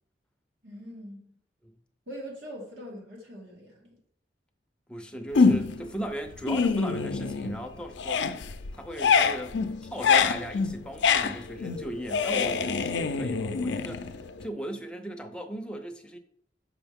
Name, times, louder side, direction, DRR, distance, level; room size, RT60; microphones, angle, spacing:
voice 1, 0.6-1.2 2.1-4.0, equal, 85° right, 2.4 m, -42 dB
voice 2, 4.9-8.4 8.8-9.6 9.9-14.1 14.4-16.2, right 1 dB, 5° left, 0.5 m, -37 dB
sound 1, 5.4-5.9 6.3-7.7 7.9-14.5, left 5 dB, 85° left, 0.5 m, -25 dB
6.2 x 5.5 x 3.5 m
head